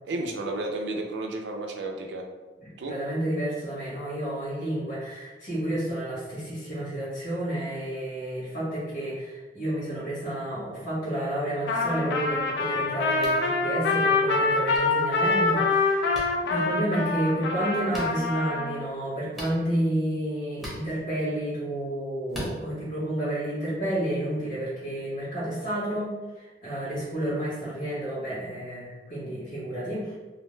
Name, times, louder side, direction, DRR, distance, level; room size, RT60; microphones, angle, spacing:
voice 1, 0.0-2.2 2.8-2.9, right 2 dB, 70° right, 2 dB, 0.4 m, -32 dB
voice 2, 2.9-30.1, right 1 dB, 45° left, -9 dB, 1.3 m, -30 dB
Trumpet, 11.7-18.8, left 3 dB, 65° left, 0.4 m, -25 dB
sound 1, 13.2-13.4 14.7-14.8 16.1-16.3 17.9-18.1 19.3-19.6 20.6-20.8 22.3-22.5, equal, ahead, 0.8 m, -37 dB
2.6 x 2.1 x 3.1 m, 1.3 s
head